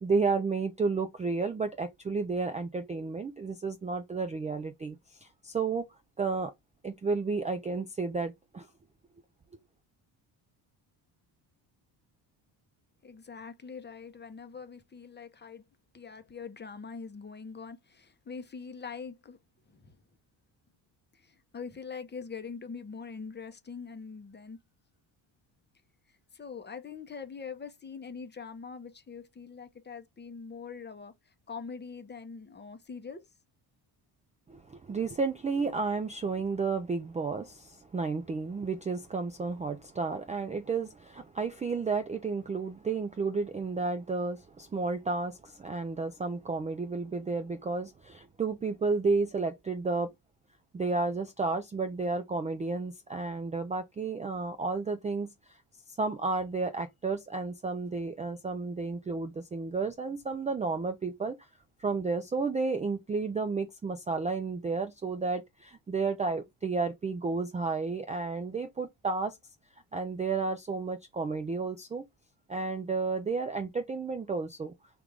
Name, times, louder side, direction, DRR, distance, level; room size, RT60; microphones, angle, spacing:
voice 1, 0.0-5.9 6.2-6.5 6.8-8.7 34.5-50.1 50.7-55.6 55.9-61.4 61.8-69.4 69.9-72.1 72.5-74.7, right 4 dB, 15° right, 0.3 m, -32 dB
voice 2, 13.0-15.6 15.9-19.4 19.7-20.0 21.1-24.6 26.3-33.3, left 5 dB, 20° left, 0.7 m, -43 dB
3.5 x 2.4 x 3.2 m
supercardioid pair, 75°, 49 cm